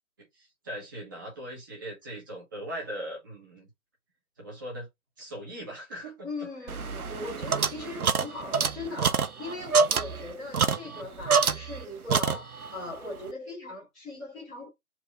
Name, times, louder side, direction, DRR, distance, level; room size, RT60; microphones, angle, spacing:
voice 1, 0.2-3.7 4.4-4.9 5.2-6.7 10.8-11.0, right 1 dB, 15° right, 1.2 m, -40 dB
voice 2, 6.2-14.7, left 2 dB, ahead, 1.1 m, -39 dB
sound 1, 6.7-11.8 12.1-12.8, right 5 dB, 85° right, 0.9 m, -26 dB
4.5 x 2.9 x 3.7 m
figure-of-eight pair, 165°, 42 cm